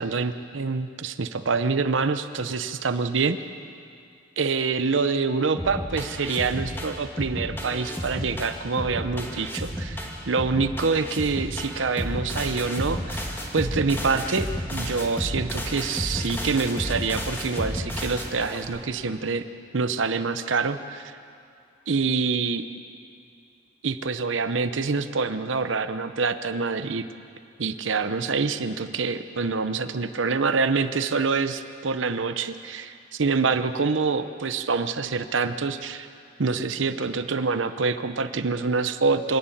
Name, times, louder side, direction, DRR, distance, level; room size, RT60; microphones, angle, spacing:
voice 1, 0.0-3.4 4.4-13.3 13.5-19.4 19.7-21.2 21.9-22.6 23.8-27.1 27.6-36.1 36.4-39.4, right 4 dB, 80° right, 10 dB, 0.8 m, -26 dB
sound 1, 5.6-18.8, equal, 10° left, 2.4 m, -32 dB
26.0 x 11.0 x 9.1 m, 2.4 s
head